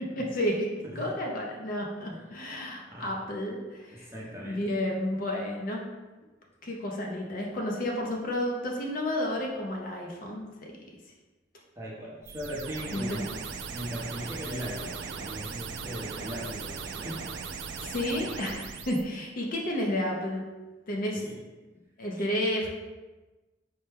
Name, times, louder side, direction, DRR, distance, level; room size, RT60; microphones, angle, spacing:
voice 1, 0.2-4.1 4.5-5.9 6.6-10.7 12.9-13.2 17.8-20.4 20.9-21.2 22.0-22.7, left 1 dB, 50° left, 0 dB, 0.5 m, -31 dB
voice 2, 0.8-1.2 2.1-2.2 2.9-3.3 3.9-4.6 11.8-13.3 13.7-17.2 21.1-21.4 22.2-22.3, equal, 15° right, -4 dB, 0.7 m, -39 dB
sound 1, 12.2-19.0, right 5 dB, 70° right, 0.3 m, -38 dB
4.3 x 2.1 x 3.3 m, 1.2 s
head